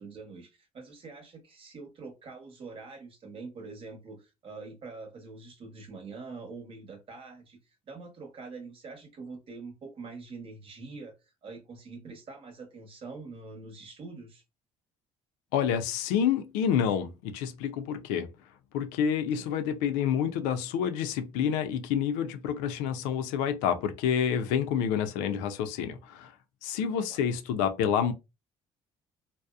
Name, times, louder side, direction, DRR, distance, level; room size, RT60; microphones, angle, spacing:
voice 1, 0.0-4.2 4.4-7.6 7.9-11.1 11.4-14.4 19.3-19.5 27.1-27.2, right 4 dB, 45° right, 1.0 m, -44 dB
voice 2, 15.5-18.3 18.7-26.3 26.6-28.1, left 8 dB, 85° left, 0.4 m, -28 dB
2.7 x 2.0 x 2.3 m
supercardioid pair, 90°, 13 cm